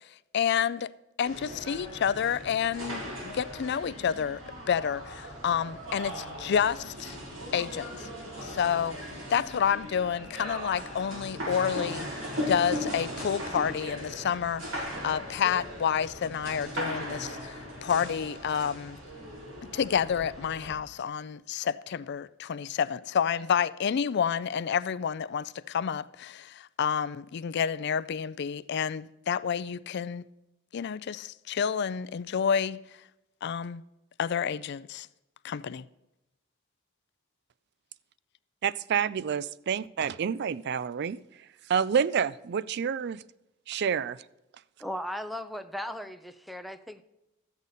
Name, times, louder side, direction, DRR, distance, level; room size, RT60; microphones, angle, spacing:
voice 1, 0.3-0.9 1.2-4.4 4.7-7.2 7.5-8.1 8.4-9.0 9.3-12.1 12.5-17.6 17.8-19.0 19.7-30.2 30.7-32.8 33.4-33.8 34.2-35.1 35.4-35.8, left 7 dB, 55° left, 0.4 m, -29 dB
sound 1, 1.2-20.7, equal, 80° right, 4.8 m, -38 dB
voice 2, 38.6-41.2 41.7-43.2 43.7-44.2, right 7 dB, 55° right, 0.4 m, -28 dB
voice 3, 44.8-47.0, equal, ahead, 0.5 m, -37 dB
13.0 x 8.2 x 4.1 m
head